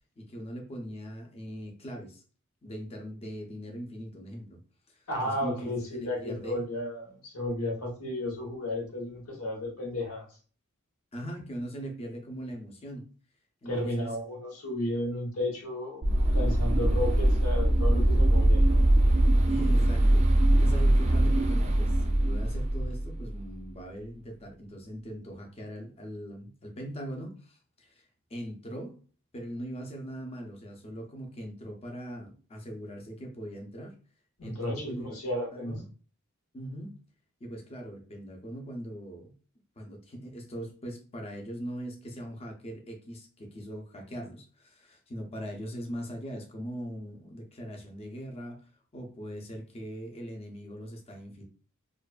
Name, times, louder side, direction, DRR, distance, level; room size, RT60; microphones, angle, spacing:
voice 1, 0.2-2.2 2.6-4.6 4.9-6.6 11.1-13.1 13.6-14.1 19.5-29.0 29.3-33.9 34.4-35.2 35.5-35.8 36.5-37.0 37.4-39.3 39.8-51.4, equal, 30° left, 0.6 m, -41 dB
voice 2, 5.1-10.3 13.6-18.7 34.4-35.8, left 1 dB, 85° left, 1.1 m, -33 dB
sound 1, 16.0-23.4, right 1 dB, 30° right, 0.4 m, -22 dB
2.5 x 2.2 x 2.4 m
head